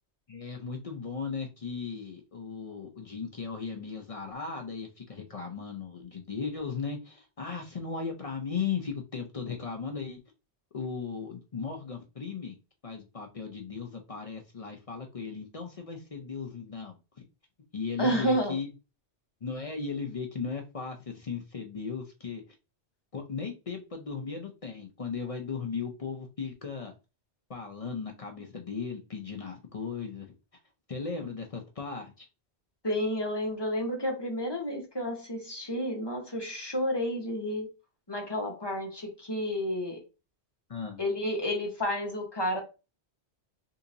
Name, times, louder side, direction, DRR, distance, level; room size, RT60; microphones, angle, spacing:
voice 1, 0.3-10.2 10.7-12.6 12.8-17.2 17.7-18.7 19.4-22.4 23.1-26.9 27.5-30.3 30.9-32.3 40.7-41.0, left 5 dB, 45° left, 0.5 m, -37 dB
voice 2, 18.0-18.6 32.8-37.7 38.1-40.0 41.0-42.6, equal, 25° left, 1.0 m, -30 dB
3.6 x 2.8 x 2.6 m
omnidirectional pair, 1.1 m